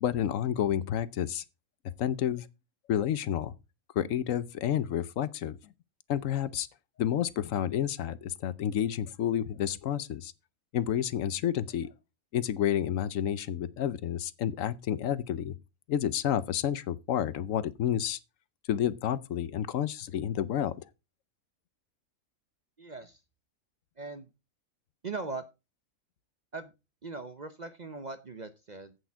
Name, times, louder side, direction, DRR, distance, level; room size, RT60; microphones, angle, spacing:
voice 1, 0.0-1.4 2.0-2.5 2.9-3.5 4.0-5.6 6.1-6.7 7.0-10.3 10.7-11.9 12.3-15.5 15.9-18.2 18.7-20.7, left 10 dB, 70° left, 1.0 m, -30 dB
voice 2, 22.8-23.2 24.0-24.3 25.0-25.4 26.5-26.7 27.0-29.0, right 3 dB, 40° right, 0.6 m, -40 dB
8.5 x 7.8 x 4.6 m
omnidirectional pair, 1.5 m